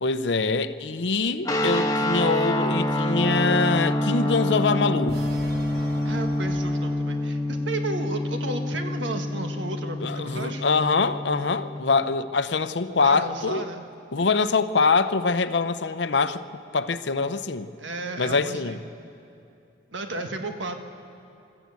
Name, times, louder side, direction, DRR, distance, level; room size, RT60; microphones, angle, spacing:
voice 1, 0.0-5.2 10.0-13.7 14.1-16.4 16.7-17.7 18.2-18.8, left 4 dB, 65° left, 0.7 m, -24 dB
sound 1, 1.4-11.8, left 1 dB, 20° left, 1.2 m, -26 dB
sound 2, 5.1-7.3, right 2 dB, 55° right, 1.3 m, -43 dB
voice 2, 6.0-10.7 12.9-13.9 17.8-18.8 19.9-20.7, right 2 dB, 75° right, 1.5 m, -33 dB
25.5 x 13.5 x 8.4 m
head